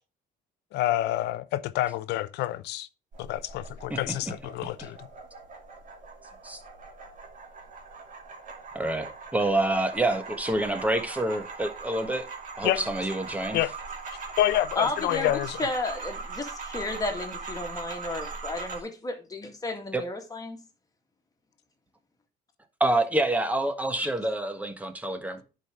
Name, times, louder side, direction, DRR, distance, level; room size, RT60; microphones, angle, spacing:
voice 1, 0.7-2.9 3.2-5.1 12.6-12.9 13.5-13.7 14.1-15.6, left 14 dB, 80° left, 0.6 m, -28 dB
sound 1, 3.1-18.8, right 4 dB, 50° right, 2.5 m, -40 dB
voice 2, 8.7-12.3 12.6-13.6 19.9-20.1 22.8-25.4, right 1 dB, 10° right, 1.4 m, -27 dB
voice 3, 14.8-20.6 25.4-25.5, left 2 dB, 20° left, 2.0 m, -33 dB
10.5 x 5.0 x 3.6 m
cardioid pair, 110°, 17 cm